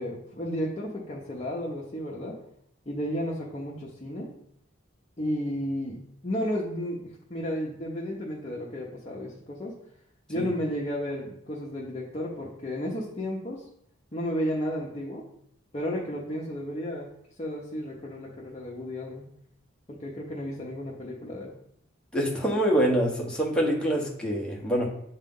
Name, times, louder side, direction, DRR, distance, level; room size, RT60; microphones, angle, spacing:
voice 1, 0.0-2.3 2.9-4.3 5.2-6.0 6.2-7.0 7.3-9.8 10.3-13.6 14.1-15.2 15.7-17.1 17.4-19.3 19.9-21.5, equal, 30° left, -5 dB, 0.9 m, -33 dB
voice 2, 22.1-24.9, equal, 5° left, -3 dB, 1.1 m, -25 dB
8.3 x 3.3 x 3.8 m, 0.72 s
head